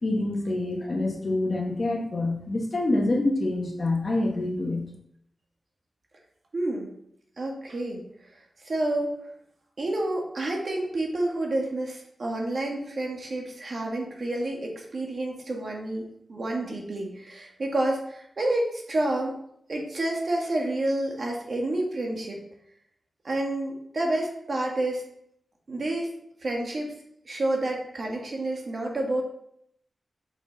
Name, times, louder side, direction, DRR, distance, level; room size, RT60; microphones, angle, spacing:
voice 1, 0.0-4.8, left 2 dB, 40° left, 0 dB, 1.4 m, -26 dB
voice 2, 6.5-6.9 7.4-8.4 8.6-9.2 9.8-19.4 19.7-22.4 23.2-25.0 25.7-26.1 26.4-26.9 27.2-29.2, right 1 dB, 50° right, 0 dB, 1.7 m, -29 dB
6.0 x 5.9 x 4.1 m, 0.72 s
wide cardioid pair, 130°, 0 cm